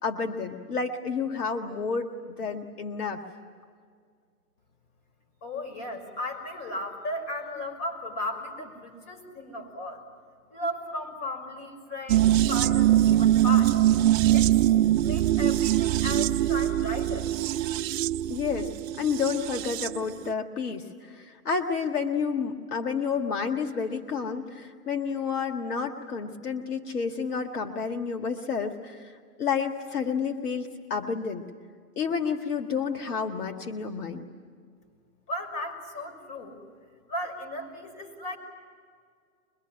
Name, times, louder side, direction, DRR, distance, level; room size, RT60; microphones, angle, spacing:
voice 1, 0.0-3.2 18.3-18.7 19.0-31.4 32.0-34.3, left 5 dB, 90° left, 5 dB, 2.0 m, -30 dB
voice 2, 5.4-10.0 10.5-13.7 14.3-14.5 15.0-17.3 35.3-36.6 37.1-38.4, left 1 dB, 40° left, 6 dB, 6.1 m, -35 dB
sound 1, 12.1-20.0 20.3-20.4, right 13 dB, 60° right, 0.6 m, -23 dB
23.5 x 23.0 x 9.8 m, 2.1 s
hypercardioid pair, 135°, 44 cm